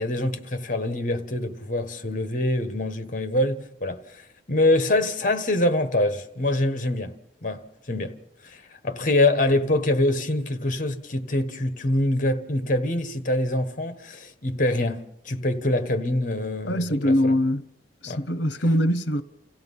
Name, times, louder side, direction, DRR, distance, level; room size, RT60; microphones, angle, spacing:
voice 1, 0.0-7.1 7.4-17.4 18.1-18.2, left 1 dB, 45° left, 1.5 m, -25 dB
voice 2, 16.7-17.6 18.0-19.2, equal, 70° left, 1.0 m, -22 dB
29.5 x 16.0 x 5.6 m
head